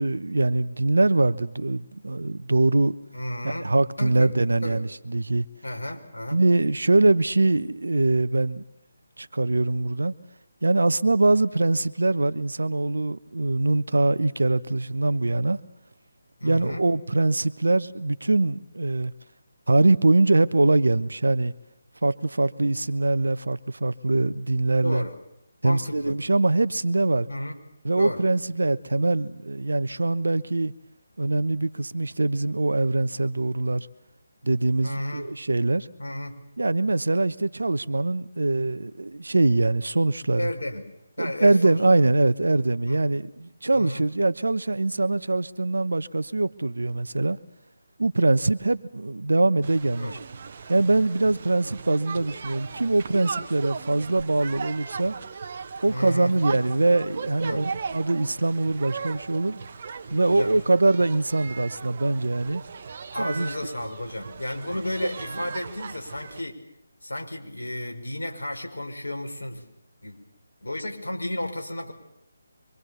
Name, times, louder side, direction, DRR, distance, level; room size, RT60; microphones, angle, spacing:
voice 1, 0.0-2.9 3.4-5.4 6.3-8.6 9.2-10.1 10.6-15.6 16.4-19.1 19.7-21.5 22.0-25.0 25.6-27.3 27.8-30.7 31.2-33.9 34.4-35.9 36.6-40.5 41.2-47.4 48.0-50.2 50.7-55.1 55.8-59.6 60.1-62.6 63.2-63.5 65.0-65.1, right 2 dB, 70° right, 1.0 m, -23 dB
voice 2, 3.1-3.7 4.0-4.3 4.6-4.8 5.6-6.4 16.4-16.9 24.8-25.2 25.6-26.2 27.3-27.6 28.0-28.2 34.8-35.3 36.0-36.4 40.4-40.8 41.2-42.0 42.5-43.0 43.7-44.0 50.0-50.2 55.9-56.3 57.4-57.7 60.3-60.5 63.1-66.6 67.0-69.6 70.0-70.2 70.6-71.9, left 1 dB, 75° left, 5.3 m, -33 dB
sound 1, 49.6-66.4, right 5 dB, 45° right, 1.5 m, -38 dB
25.0 x 24.5 x 7.1 m
figure-of-eight pair, 150°, 0 cm